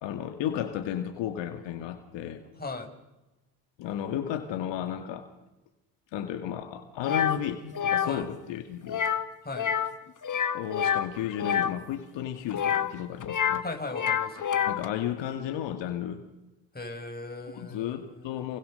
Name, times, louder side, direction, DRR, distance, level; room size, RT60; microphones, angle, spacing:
voice 1, 0.0-2.4 3.8-5.3 6.1-9.0 10.5-13.6 14.7-16.2 17.5-18.6, left 10 dB, 65° left, 6 dB, 2.3 m, -33 dB
sound 1, 7.0-7.4 7.7-8.1 8.9-9.3 9.5-9.9 10.2-11.7 12.5-13.6 13.9-14.9, left 8 dB, 40° left, 2.1 m, -27 dB
voice 2, 13.6-14.7 16.7-18.4, left 3 dB, 20° left, 4 dB, 6.3 m, -38 dB
28.5 x 23.5 x 6.6 m, 1.1 s
hypercardioid pair, 55°, 48 cm